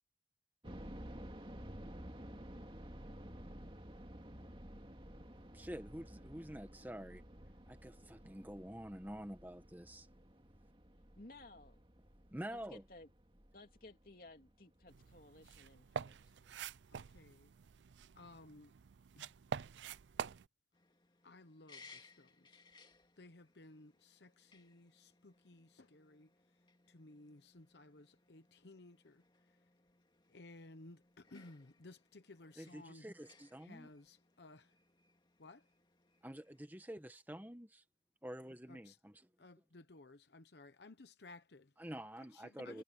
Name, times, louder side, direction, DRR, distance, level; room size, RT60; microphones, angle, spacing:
sound 1, 0.6-15.5 15.8-15.9 16.5-16.8, equal, 30° right, 2.4 m, -53 dB
voice 1, 5.5-7.2 7.7-10.1 12.3-12.8 32.6-33.9 36.2-37.8 38.2-39.2 41.8-42.8, equal, 10° right, 1.3 m, -48 dB
voice 2, 11.2-11.8 12.5-13.1 13.5-16.5 42.6-42.8, left 2 dB, 50° left, 3.1 m, -57 dB
sound 2, 14.9-20.5, right 6 dB, 85° right, 0.5 m, -46 dB
voice 3, 16.9-17.5 18.1-18.7 19.2-19.3 21.2-22.6 23.2-26.3 26.9-29.6 30.3-33.1 33.6-34.7 35.4-35.6 38.7-39.0 39.4-41.7 42.2-42.8, left 2 dB, 70° left, 1.0 m, -58 dB
sound 3, 20.7-36.7, left 4 dB, 25° left, 2.3 m, -66 dB
head